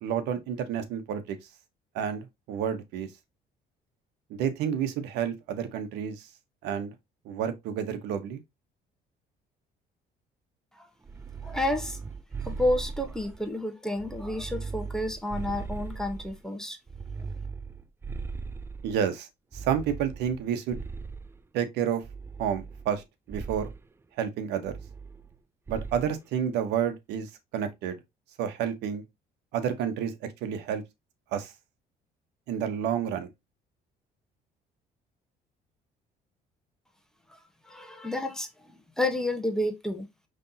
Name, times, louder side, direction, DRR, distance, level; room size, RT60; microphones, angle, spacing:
voice 1, 0.0-1.4 1.9-3.1 4.3-6.3 6.6-6.9 7.2-8.4 18.8-19.3 19.5-20.8 21.5-22.0 22.4-23.7 24.2-24.7 25.7-28.0 28.4-29.0 29.5-30.1 30.4-30.8 31.3-31.5 32.5-33.3, right 8 dB, 85° right, 1.0 m, -30 dB
sound 1, 11.0-13.5 14.0-16.4 16.9-19.0 19.5-21.4 22.0-23.0 23.3-23.8 24.7-25.4 25.7-26.1, right 4 dB, 15° right, 0.3 m, -39 dB
voice 2, 11.4-12.0 12.4-16.8 37.3-37.4 37.6-40.1, left 1 dB, 5° left, 1.1 m, -30 dB
5.3 x 3.3 x 2.7 m
cardioid pair, 110°, 17 cm